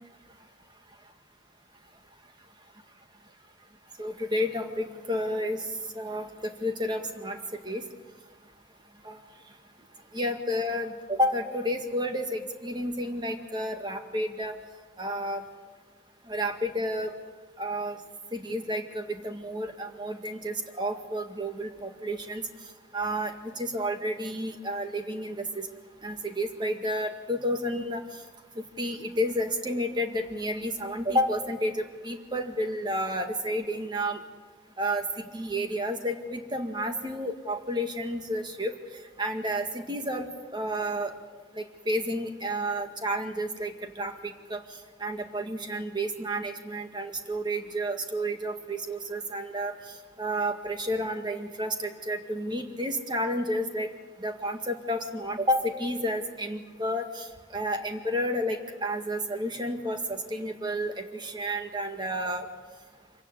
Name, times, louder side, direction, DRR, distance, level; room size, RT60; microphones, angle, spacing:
voice 1, 4.0-5.6 5.9-6.3 6.6-7.4 7.6-7.8 9.0-9.2 10.1-14.5 15.0-15.4 16.3-17.1 17.6-18.0 18.3-22.5 22.9-25.7 26.0-28.0 28.6-34.2 34.8-38.7 39.2-41.1 41.6-44.6 45.0-49.7 50.2-53.9 54.2-57.3 57.5-62.5, equal, 25° right, 5 dB, 1.9 m, -31 dB
26.0 x 16.5 x 9.7 m, 1.5 s
head